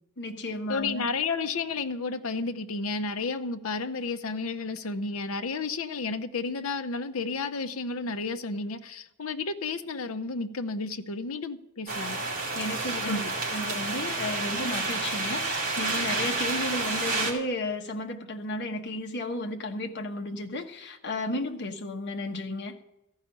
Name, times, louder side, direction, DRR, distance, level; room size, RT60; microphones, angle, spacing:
voice 1, 0.2-1.0 12.5-13.1 13.5-22.7, left 1 dB, 55° left, 1.2 m, -33 dB
voice 2, 0.7-12.2 13.0-13.3, left 4 dB, 75° left, 0.8 m, -32 dB
sound 1, 11.9-17.3, right 3 dB, 40° right, 3.1 m, -30 dB
14.0 x 5.7 x 9.6 m
head